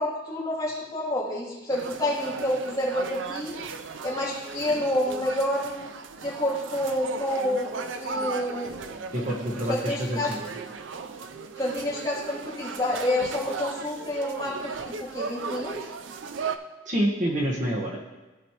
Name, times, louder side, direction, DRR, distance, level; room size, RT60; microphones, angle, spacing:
voice 1, 0.0-3.5 4.0-5.9 6.2-8.7 9.7-10.3 11.6-15.9, left 1 dB, 20° left, -8 dB, 2.7 m, -28 dB
sound 1, 1.7-16.6, right 5 dB, 80° right, 0.5 m, -36 dB
voice 2, 9.1-10.4 16.8-18.1, equal, 40° right, -1 dB, 1.2 m, -27 dB
15.0 x 5.2 x 2.9 m, 1.2 s
head